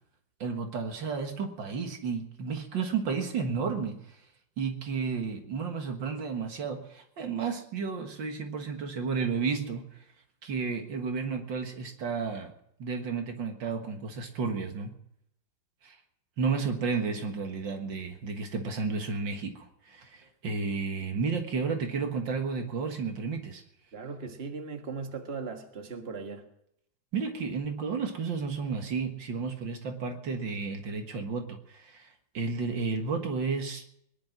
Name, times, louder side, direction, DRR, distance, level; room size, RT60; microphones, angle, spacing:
voice 1, 0.4-4.0 4.6-9.9 10.4-12.5 12.8-14.9 15.8-16.0 16.4-23.6 27.1-33.8, right 5 dB, 75° right, 5 dB, 2.3 m, -32 dB
voice 2, 23.9-26.4, right 4 dB, 35° right, 4 dB, 1.8 m, -38 dB
21.0 x 11.0 x 6.0 m, 0.75 s
omnidirectional pair, 2.0 m